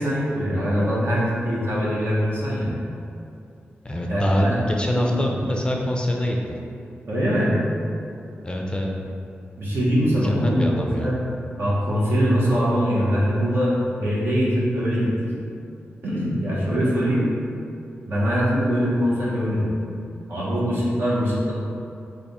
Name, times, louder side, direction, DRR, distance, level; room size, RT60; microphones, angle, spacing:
voice 1, 0.0-2.7 4.1-4.5 5.0-5.1 7.1-7.6 9.6-11.2 11.5-15.3 16.0-17.2 18.1-19.7 20.3-21.5, equal, 60° right, -7 dB, 1.2 m, -22 dB
voice 2, 3.8-6.6 8.4-8.9 10.2-11.1, left 1 dB, 20° left, 0 dB, 0.4 m, -25 dB
3.3 x 2.5 x 4.1 m, 2.5 s
cardioid pair, 70°, 4 cm